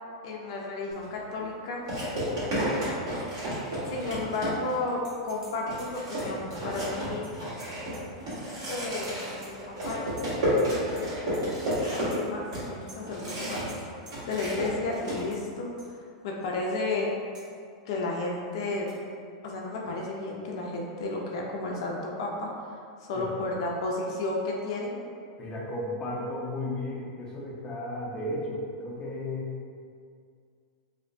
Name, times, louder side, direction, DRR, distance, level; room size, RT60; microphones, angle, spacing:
voice 1, 0.2-1.8 3.9-7.3 8.7-11.1 11.9-13.6 14.3-15.9 16.2-17.1 17.9-18.9 19.4-22.5 23.1-25.0, left 2 dB, 65° left, -2 dB, 0.4 m, -33 dB
sound 1, 0.9-1.1 1.9-4.9 5.3-5.4 5.7-13.8 14.1-15.2, equal, 70° right, 1.4 m, -31 dB
voice 2, 2.2-2.8 23.1-23.3 25.4-29.6, left 1 dB, 25° left, -5 dB, 0.6 m, -34 dB
sound 2, 5.0-5.5 5.8-8.4 8.7-9.5 9.8-10.7 10.9-11.4 11.7-11.8 12.1-12.2 12.5-12.6 12.9-13.0 13.3-13.4 13.7-13.8 14.0-14.1 15.0-15.4 15.8-15.9 16.4-16.5 17.3-17.5 18.9-19.0, right 2 dB, 25° right, 1.2 m, -50 dB
2.8 x 2.1 x 2.5 m, 2.2 s
hypercardioid pair, 120°, 3 cm